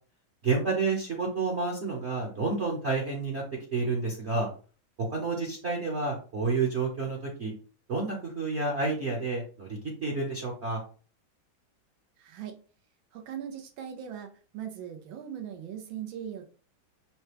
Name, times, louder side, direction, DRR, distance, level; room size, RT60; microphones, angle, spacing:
voice 1, 0.4-4.5 5.0-7.5 7.9-10.8, right 3 dB, 45° right, -2 dB, 1.0 m, -30 dB
voice 2, 12.2-12.6 13.1-16.5, right 9 dB, 80° right, 4 dB, 1.4 m, -39 dB
5.7 x 2.2 x 3.3 m, 0.38 s
omnidirectional pair, 2.1 m